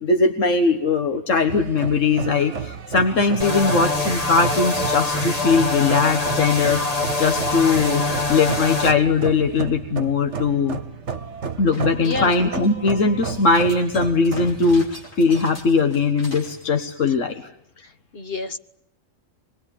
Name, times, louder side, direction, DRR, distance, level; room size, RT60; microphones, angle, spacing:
voice 1, 0.0-6.8 7.2-8.0 8.3-10.8 11.6-14.9 15.2-17.4, left 4 dB, 70° left, 6 dB, 1.7 m, -20 dB
sound 1, 1.5-14.6, right 6 dB, 65° right, 1.5 m, -32 dB
sound 2, 3.4-8.9, left 3 dB, 30° left, 1.9 m, -24 dB
sound 3, 11.7-12.9 13.3-16.6, left 1 dB, 90° left, 4.5 m, -41 dB
voice 2, 12.0-12.5 17.8-18.6, left 3 dB, 50° left, 9 dB, 1.4 m, -30 dB
25.0 x 20.5 x 10.0 m, 0.78 s
omnidirectional pair, 1.3 m